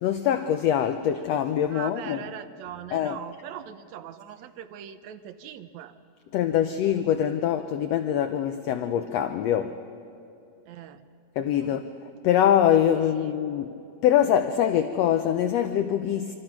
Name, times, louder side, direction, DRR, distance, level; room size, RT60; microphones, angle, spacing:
voice 1, 0.0-2.3 2.9-3.2 6.3-9.7 11.4-13.8 14.0-16.4, left 10 dB, 70° left, 8 dB, 1.6 m, -24 dB
voice 2, 1.7-5.9 10.7-11.0 11.6-11.8, right 10 dB, 70° right, 9 dB, 2.1 m, -41 dB
25.5 x 25.5 x 6.0 m, 2.5 s
omnidirectional pair, 3.5 m